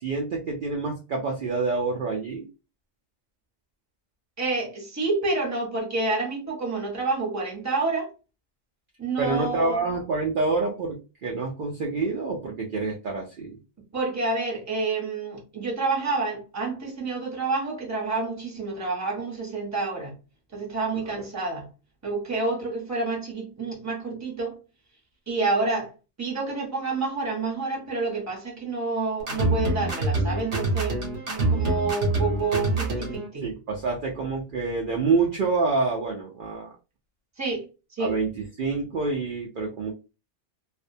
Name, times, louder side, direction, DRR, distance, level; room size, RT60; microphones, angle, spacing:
voice 1, 0.0-2.5 9.2-13.6 21.2-21.3 33.4-36.7 38.0-39.9, right 3 dB, 55° right, 0.7 m, -27 dB
voice 2, 4.4-8.1 9.0-9.8 13.9-20.1 20.5-21.6 22.0-24.6 25.3-25.9 26.2-31.0 31.3-33.5 37.4-38.1, right 3 dB, 15° right, 0.8 m, -28 dB
sound 1, 29.2-33.3, right 2 dB, 80° right, 1.2 m, -26 dB
2.6 x 2.1 x 2.6 m
omnidirectional pair, 1.2 m